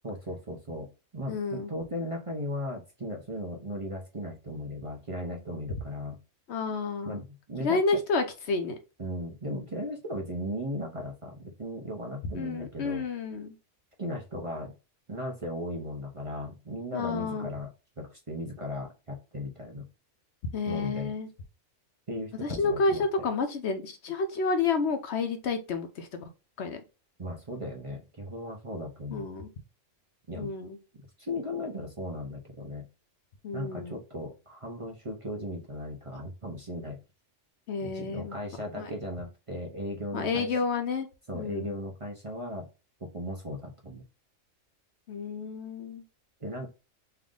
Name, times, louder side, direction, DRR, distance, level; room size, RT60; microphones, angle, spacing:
voice 1, 0.0-0.9 1.1-6.2 7.0-7.2 7.5-7.8 9.0-13.0 14.0-14.7 15.1-17.7 18.0-19.8 20.7-21.1 22.1-23.3 27.2-29.2 30.3-30.5 31.2-32.9 33.5-37.0 37.8-40.5 41.3-42.7 43.0-44.0 46.4-46.7, equal, 30° right, -1 dB, 0.7 m, -37 dB
voice 2, 1.3-1.7 6.5-7.2 7.6-8.8 12.3-13.5 16.9-17.5 20.5-21.3 22.4-26.2 26.6-26.8 29.1-29.5 30.4-30.8 33.4-34.0 37.7-38.4 38.8-38.9 40.1-41.1 41.3-41.7 45.1-46.0, left 4 dB, 65° left, 6 dB, 0.9 m, -30 dB
3.4 x 2.5 x 3.7 m, 0.29 s
omnidirectional pair, 1.3 m